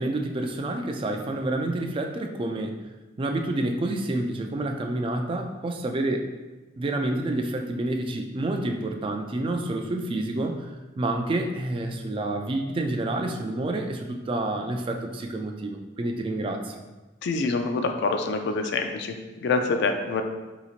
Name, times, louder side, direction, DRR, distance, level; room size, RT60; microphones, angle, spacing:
voice 1, 0.0-2.7 3.2-6.3 6.8-10.7 11.0-16.7, right 2 dB, 25° right, 4 dB, 0.3 m, -28 dB
voice 2, 17.2-20.2, left 3 dB, 65° left, 5 dB, 0.4 m, -26 dB
3.9 x 2.9 x 2.4 m, 1.2 s
head